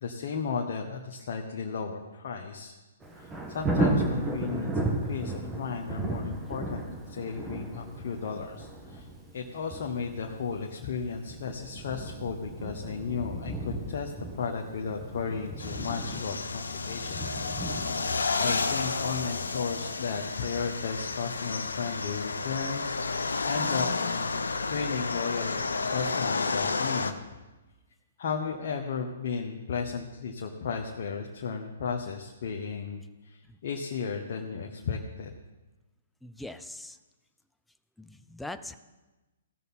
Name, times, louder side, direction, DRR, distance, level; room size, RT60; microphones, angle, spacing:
voice 1, 0.0-2.8 3.2-9.1 9.3-17.9 18.4-23.0 23.4-23.9 24.3-25.6 25.9-27.2 28.2-35.3, left 5 dB, 55° left, 2 dB, 1.1 m, -34 dB
Thunder, 3.0-21.8 22.2-22.3, right 2 dB, 15° right, 1.7 m, -35 dB
sound 1, 15.6-27.1, left 4 dB, 85° left, 0.8 m, -31 dB
voice 2, 36.2-37.0 38.0-38.8, left 2 dB, 5° left, 9 dB, 0.6 m, -42 dB
17.0 x 6.7 x 4.2 m, 1.1 s
hypercardioid pair, 130°, 0 cm